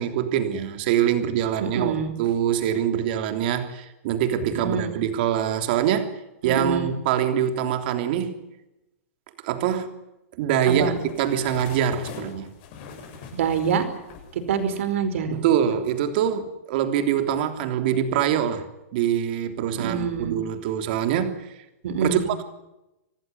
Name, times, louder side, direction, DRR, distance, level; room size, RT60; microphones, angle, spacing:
voice 1, 0.0-8.3 9.4-10.0 10.4-12.5 15.3-18.7 18.9-21.4 22.0-22.4, right 9 dB, 40° right, 3.3 m, -24 dB
voice 2, 1.6-2.1 4.4-4.9 6.4-6.9 10.7-11.0 13.3-13.9 14.3-15.4 19.7-20.4 21.8-22.3, right 6 dB, 55° right, 5.1 m, -26 dB
sound 1, 10.8-15.1 15.5-15.7, left 5 dB, 35° left, 7.2 m, -42 dB
26.0 x 19.0 x 9.6 m
supercardioid pair, 175°, 8 cm